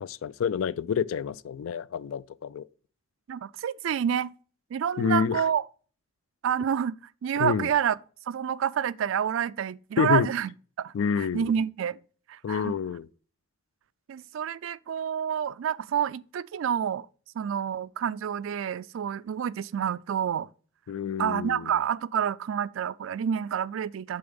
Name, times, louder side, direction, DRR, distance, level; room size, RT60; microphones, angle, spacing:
voice 1, 0.0-2.7 5.0-5.4 7.4-7.7 10.0-10.3 10.9-11.5 12.4-13.1 20.9-21.7, left 6 dB, 80° left, 0.3 m, -28 dB
voice 2, 3.3-4.3 4.7-5.7 6.4-8.0 8.3-10.5 10.8-12.0 12.3-12.7 14.1-17.1 17.4-20.5 21.2-24.2, right 8 dB, 75° right, 0.3 m, -28 dB
6.8 x 4.0 x 5.2 m
head